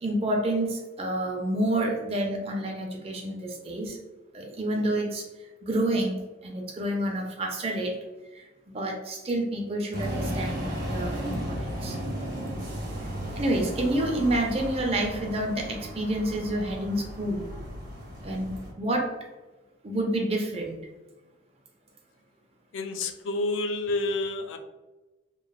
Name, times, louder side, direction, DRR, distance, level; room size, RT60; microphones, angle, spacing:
voice 1, 0.0-4.0 4.3-5.2 5.6-8.0 8.3-8.5 8.7-12.0 13.3-17.5 18.2-19.1 19.8-20.8, right 1 dB, 30° right, 1 dB, 0.4 m, -29 dB
sound 1, 9.9-18.7, equal, 50° right, 0.8 m, -35 dB
voice 2, 22.7-24.6, left 2 dB, 80° left, 6 dB, 0.3 m, -29 dB
3.0 x 2.0 x 2.3 m, 1.1 s
head